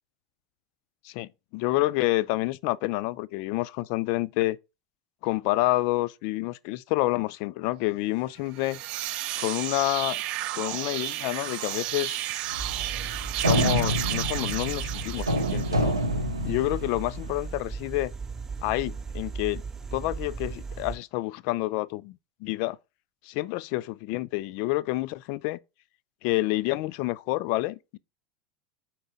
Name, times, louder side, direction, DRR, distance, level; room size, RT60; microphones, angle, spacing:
voice 1, 1.0-4.6 5.2-8.8 9.4-10.2 10.5-12.2 13.3-16.0 16.4-18.1 18.6-19.6 19.9-22.8 23.2-25.6 26.2-28.0, left 18 dB, 50° left, 0.3 m, -28 dB
sound 1, 8.5-15.9, right 15 dB, 45° right, 0.4 m, -32 dB
sound 2, 12.5-17.3, equal, 85° right, 0.7 m, -28 dB
sound 3, 12.6-21.0, right 5 dB, 20° right, 0.7 m, -37 dB
4.5 x 4.4 x 5.0 m
figure-of-eight pair, 80°, 2 cm